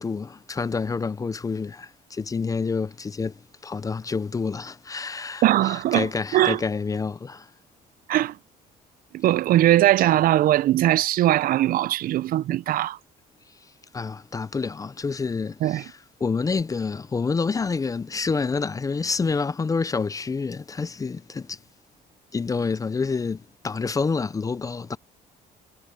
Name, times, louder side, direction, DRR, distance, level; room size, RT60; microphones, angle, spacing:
voice 1, 0.0-7.5 13.9-21.6 22.3-25.0, left 4 dB, 20° left, 0.5 m, -28 dB
voice 2, 5.4-6.6 8.1-8.4 9.1-13.0 15.6-15.8, right 14 dB, 60° right, 0.4 m, -20 dB
cardioid pair, 110°, 17 cm